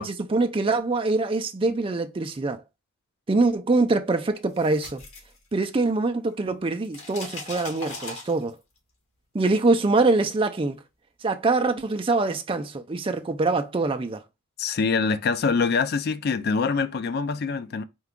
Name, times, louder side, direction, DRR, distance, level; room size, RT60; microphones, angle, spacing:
voice 1, 0.0-2.6 3.3-5.0 5.5-8.5 9.3-10.8 11.2-14.2, right 3 dB, 25° right, 0.4 m, -24 dB
sound 1, 4.3-6.0 6.3-8.8, left 3 dB, 85° left, 1.7 m, -39 dB
voice 2, 14.6-17.8, left 5 dB, 45° left, 0.3 m, -24 dB
4.5 x 2.3 x 3.6 m
head